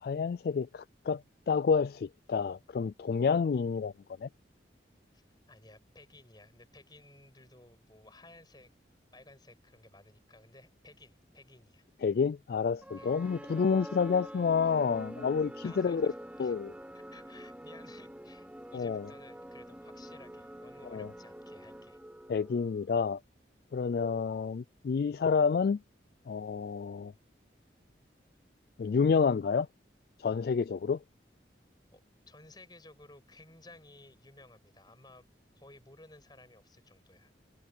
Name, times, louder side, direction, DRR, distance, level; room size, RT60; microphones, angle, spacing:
voice 1, 0.0-3.9 4.2-4.3 12.0-16.1 16.4-16.7 18.7-19.1 20.9-21.1 22.3-23.2 23.7-25.8 26.3-27.1 28.8-29.7 30.2-31.0, left 5 dB, 55° left, 0.3 m, -29 dB
voice 2, 5.5-8.7 9.1-11.8 13.0-13.1 15.6-16.5 16.9-22.0 31.9-32.0 32.3-35.3 35.5-37.3, left 2 dB, 25° left, 6.4 m, -56 dB
sound 1, 12.8-23.0, equal, 5° right, 3.1 m, -46 dB
head